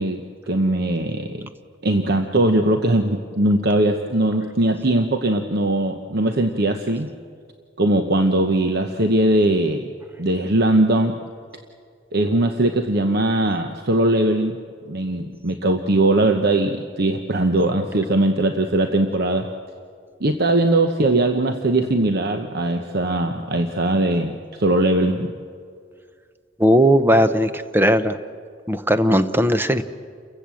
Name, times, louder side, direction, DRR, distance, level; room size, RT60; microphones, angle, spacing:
voice 1, 0.0-1.5 1.8-7.1 7.8-9.8 10.2-11.2 12.1-14.6 14.9-19.5 20.2-25.3, right 1 dB, 55° right, 6 dB, 1.0 m, -20 dB
voice 2, 26.6-28.2 28.7-29.8, equal, 10° right, 10 dB, 0.7 m, -17 dB
28.5 x 15.5 x 7.7 m, 2.1 s
head